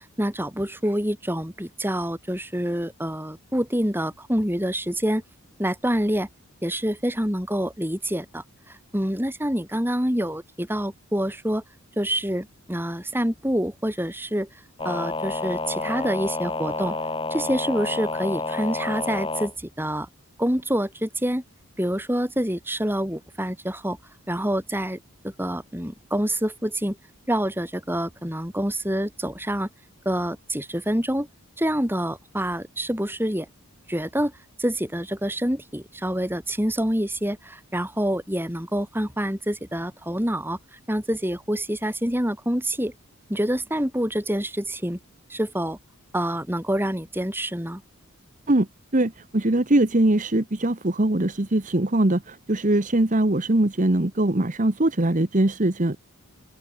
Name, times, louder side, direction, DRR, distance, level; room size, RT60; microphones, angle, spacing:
voice 1, 0.2-5.2 5.6-6.3 6.6-11.6 12.0-14.5 14.8-16.9 17.3-20.1 20.4-21.4 21.8-24.0 24.3-27.0 27.3-29.7 30.0-31.3 31.6-33.5 33.9-34.3 34.6-42.9 43.3-45.0 45.3-45.8 46.1-47.8, equal, 10° right, 6.1 m, -27 dB
sound 1, 14.8-19.5, left 3 dB, 25° left, 3.5 m, -29 dB
voice 2, 48.9-56.0, right 1 dB, 35° right, 1.2 m, -22 dB
open air
head